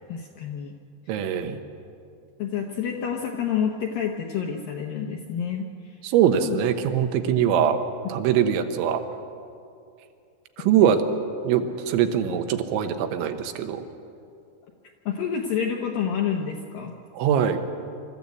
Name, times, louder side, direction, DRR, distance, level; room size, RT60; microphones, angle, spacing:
voice 1, 0.1-0.7 1.1-1.2 2.4-6.0 6.4-6.6 15.1-16.9, left 7 dB, 75° left, 2 dB, 2.1 m, -28 dB
voice 2, 1.1-1.6 6.0-7.8 8.1-9.0 10.6-11.0 11.4-13.8 17.2-17.6, right 9 dB, 80° right, 7 dB, 3.4 m, -22 dB
25.0 x 13.5 x 8.4 m, 2.5 s
omnidirectional pair, 5.3 m